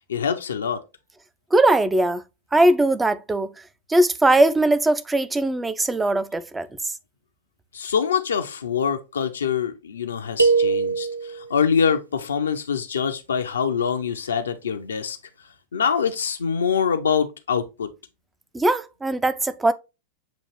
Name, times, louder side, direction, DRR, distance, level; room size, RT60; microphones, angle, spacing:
voice 1, 0.1-0.8 7.7-15.2 15.7-17.9, left 7 dB, 70° left, 0.4 m, -24 dB
voice 2, 1.5-2.2 2.5-3.5 3.9-6.7 18.5-19.7, right 2 dB, 10° right, 0.4 m, -20 dB
sound 1, 10.4-11.5, right 4 dB, 85° right, 0.4 m, -21 dB
6.8 x 2.5 x 3.1 m
figure-of-eight pair, 90°, 0 cm